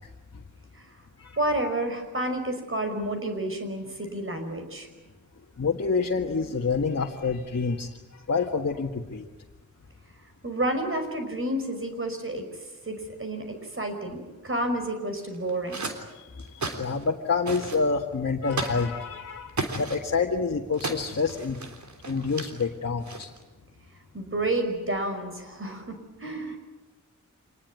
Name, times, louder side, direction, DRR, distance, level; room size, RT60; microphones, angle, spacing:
voice 1, 1.4-4.9 10.4-12.5 12.9-15.9 24.1-26.0 26.2-26.6, right 1 dB, 40° right, 6 dB, 5.6 m, -30 dB
voice 2, 5.6-7.9 8.3-9.2 16.1-21.6 22.1-23.3, left 4 dB, 50° left, 0 dB, 1.8 m, -27 dB
sound 1, 15.2-16.0 16.4-17.1 17.4-17.8 18.5-18.9 19.5-20.0 20.7-22.6 23.0-23.4, right 3 dB, 65° right, 3.6 m, -34 dB
26.5 x 20.5 x 9.5 m, 1.1 s
wide cardioid pair, 95°, 32 cm